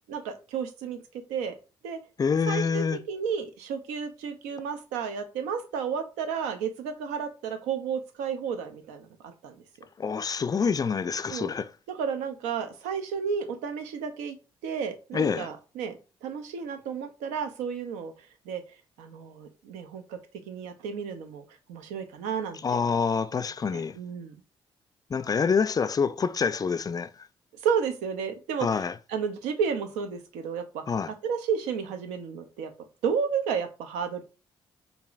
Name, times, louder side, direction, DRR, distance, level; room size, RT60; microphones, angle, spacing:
voice 1, 0.1-1.0 1.3-1.5 1.8-2.0 2.5-9.6 11.3-11.5 11.9-14.4 14.6-18.6 19.0-20.2 20.5-22.9 23.7-24.4 27.6-30.8 31.2-32.7 33.0-34.2, right 6 dB, 80° right, 0.6 m, -32 dB
voice 2, 2.2-3.0 10.0-11.7 15.1-15.5 22.6-24.0 25.1-27.1 28.6-28.9 30.9-31.1, left 5 dB, 30° left, 0.3 m, -26 dB
4.7 x 2.6 x 2.5 m
hypercardioid pair, 45°, 12 cm